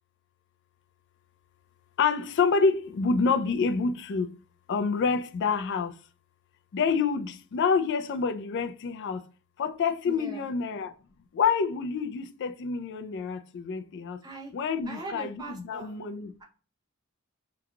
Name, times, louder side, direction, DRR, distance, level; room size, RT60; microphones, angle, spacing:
voice 1, 2.0-4.3 4.7-5.9 6.7-9.2 9.6-10.9 11.3-14.2 14.5-16.3, left 5 dB, 55° left, 0.4 m, -27 dB
voice 2, 10.1-10.5 14.2-14.5 14.9-16.0, right 3 dB, 20° right, 0.6 m, -40 dB
2.9 x 2.2 x 3.6 m
head